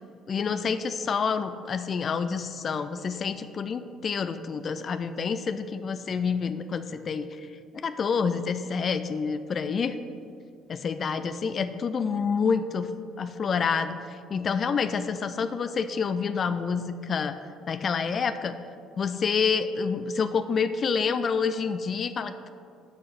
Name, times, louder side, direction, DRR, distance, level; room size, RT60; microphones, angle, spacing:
voice 1, 0.3-7.5 7.8-10.0 10.7-12.9 13.2-17.3 17.7-18.6 19.0-22.5, left 5 dB, 45° left, 11 dB, 0.4 m, -28 dB
6.5 x 5.6 x 5.9 m, 2.3 s
hypercardioid pair, 55°, 0 cm